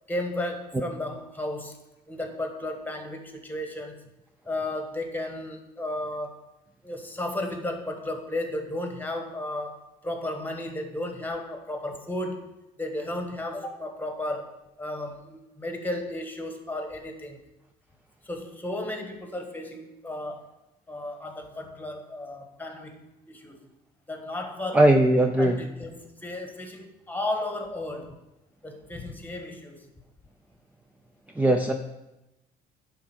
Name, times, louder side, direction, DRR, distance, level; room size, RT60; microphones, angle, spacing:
voice 1, 0.1-1.8 2.1-4.0 4.4-6.5 6.8-17.4 18.2-20.5 20.9-23.0 23.3-23.6 24.1-24.8 25.4-28.1 28.6-29.8, left 1 dB, 10° left, 4 dB, 1.4 m, -34 dB
voice 2, 24.7-25.6 31.4-31.7, right 1 dB, 10° right, 5 dB, 0.5 m, -19 dB
10.5 x 3.7 x 6.0 m, 0.97 s
cardioid pair, 110°, 17 cm